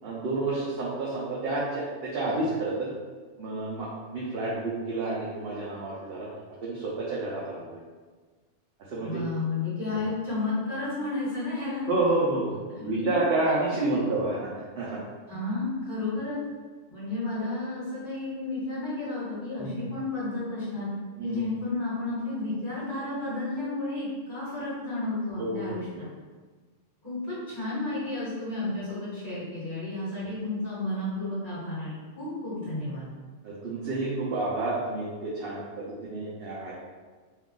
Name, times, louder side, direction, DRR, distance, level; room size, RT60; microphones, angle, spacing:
voice 1, 0.0-2.9 3.4-6.3 6.6-7.8 8.9-9.2 11.9-14.4 14.8-15.0 19.6-19.8 21.2-21.4 25.4-26.0 33.4-36.7, right 2 dB, 60° right, -7 dB, 0.8 m, -29 dB
voice 2, 9.0-11.9 12.7-13.2 13.8-14.1 15.3-16.4 16.9-20.9 21.2-26.1 27.0-33.1, left 2 dB, 40° left, -11 dB, 1.4 m, -32 dB
2.8 x 2.4 x 3.7 m, 1.4 s
omnidirectional pair, 1.3 m